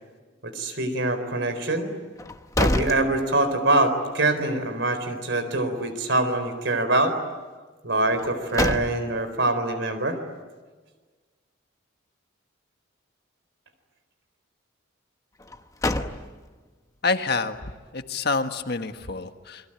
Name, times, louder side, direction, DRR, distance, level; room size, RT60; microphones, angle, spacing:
voice 1, 0.4-1.9 2.6-7.2 7.8-10.2, right 2 dB, 60° right, 9 dB, 4.2 m, -24 dB
sound 1, 2.2-3.8 4.2-4.3 8.1-9.4 15.4-16.7, left 1 dB, 15° left, 0.9 m, -28 dB
voice 2, 17.0-19.7, left 4 dB, 50° left, 7 dB, 1.6 m, -28 dB
29.0 x 23.0 x 9.0 m, 1.4 s
head